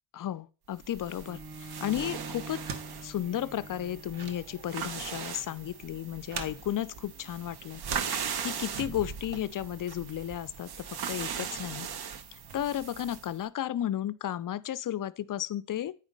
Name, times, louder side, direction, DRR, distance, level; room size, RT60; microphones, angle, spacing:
voice 1, 0.1-2.6 3.0-8.1 8.4-11.9 12.3-16.0, left 11 dB, 45° left, 0.5 m, -34 dB
sound 1, 0.8-13.3, right 7 dB, 50° right, 0.9 m, -39 dB
Bowed string instrument, 1.2-6.4, right 2 dB, 20° right, 1.7 m, -47 dB
sound 2, 2.4-8.8, right 6 dB, 90° right, 1.2 m, -44 dB
8.9 x 4.9 x 5.2 m
cardioid pair, 90°, 48 cm